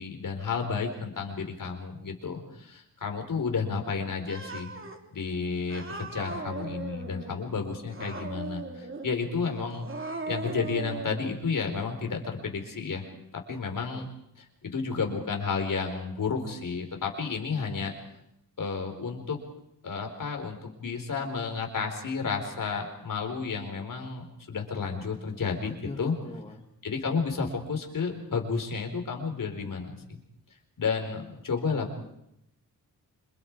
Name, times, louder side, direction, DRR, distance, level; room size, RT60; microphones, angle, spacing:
voice 1, 0.0-4.7 5.1-9.9 10.3-13.1 13.5-14.1 14.6-17.9 18.6-19.4 19.8-26.1 26.8-29.9 30.8-32.0, left 5 dB, 60° left, 3 dB, 4.5 m, -31 dB
Cat, 4.3-5.0 5.7-7.4 7.9-9.2 9.7-11.3, right 3 dB, 35° right, 3.0 m, -38 dB
voice 2, 25.6-26.6, left 2 dB, 15° left, 2 dB, 2.4 m, -42 dB
27.0 x 26.5 x 4.8 m, 0.81 s
wide cardioid pair, 130°, 36 cm